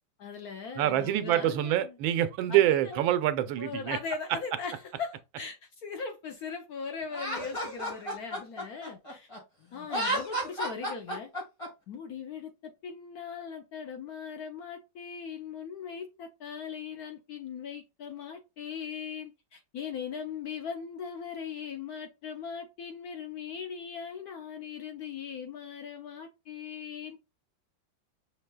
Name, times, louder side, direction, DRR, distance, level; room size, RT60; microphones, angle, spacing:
voice 1, 0.2-2.0 2.5-3.0 3.6-9.3 9.7-11.3 11.9-27.2, left 6 dB, 65° left, 1.0 m, -39 dB
voice 2, 0.8-4.0, right 12 dB, 85° right, 1.4 m, -26 dB
Laughter, 7.1-9.4 9.8-11.7, right 1 dB, 20° left, 1.6 m, -32 dB
6.4 x 3.2 x 2.2 m
omnidirectional pair, 2.1 m